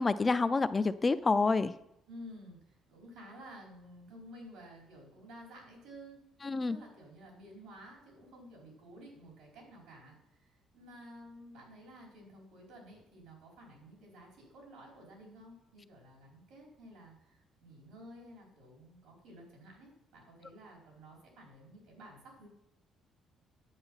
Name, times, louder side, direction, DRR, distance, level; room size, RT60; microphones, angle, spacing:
voice 1, 0.0-1.7 6.4-6.8, left 3 dB, 20° left, 12 dB, 0.4 m, -28 dB
voice 2, 2.1-6.2 6.5-22.5, equal, 80° right, -1 dB, 4.8 m, -53 dB
9.8 x 8.6 x 5.6 m, 0.79 s
cardioid pair, 165°, 0 cm